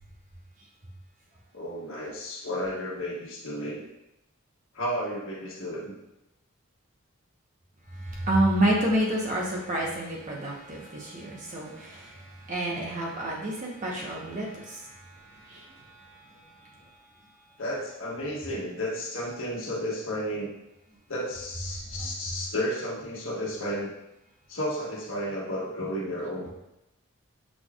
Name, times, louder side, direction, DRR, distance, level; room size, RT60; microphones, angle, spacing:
voice 1, 1.5-3.8 4.7-6.0 17.6-20.5 21.1-23.9 24.5-26.5, equal, 65° left, -4 dB, 1.2 m, -32 dB
voice 2, 7.9-16.4 21.9-22.1, right 1 dB, 35° right, -3 dB, 0.9 m, -29 dB
6.1 x 3.4 x 2.4 m, 0.90 s
head